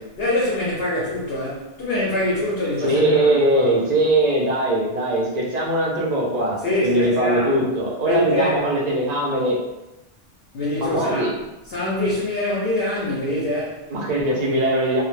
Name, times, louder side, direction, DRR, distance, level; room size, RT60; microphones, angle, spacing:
voice 1, 0.2-3.7 6.6-7.7 8.0-8.6 10.5-11.3 11.7-13.8, left 1 dB, 60° left, -6 dB, 0.7 m, -24 dB
voice 2, 2.8-9.6 10.8-11.3 13.9-15.0, right 1 dB, 45° right, -4 dB, 0.5 m, -21 dB
2.2 x 2.1 x 3.0 m, 0.99 s
omnidirectional pair, 1.3 m